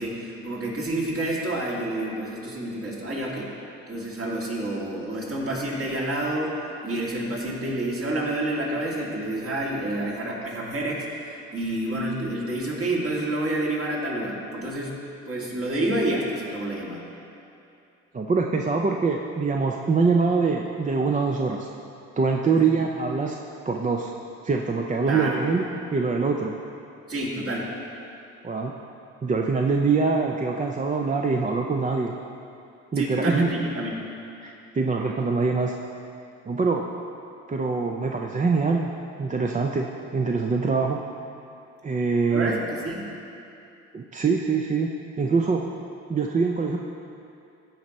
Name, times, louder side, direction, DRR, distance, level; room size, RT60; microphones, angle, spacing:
voice 1, 0.0-3.5 3.9-6.5 6.8-15.0 15.3-17.0 22.5-22.6 25.1-25.4 27.1-27.7 33.0-34.0 42.3-43.1, right 1 dB, 50° right, -4 dB, 2.5 m, -28 dB
voice 2, 18.1-21.7 22.2-23.4 23.7-24.1 24.4-25.6 25.9-26.5 28.4-28.7 29.2-32.1 32.9-33.7 34.4-35.7 36.5-36.8 37.5-38.9 39.2-39.9 40.1-41.0 41.8-42.6 43.9-44.9 45.2-45.6 46.1-46.8, right 4 dB, 25° right, 1 dB, 0.5 m, -24 dB
15.0 x 5.3 x 4.2 m, 2.6 s
cardioid pair, 90°, 30 cm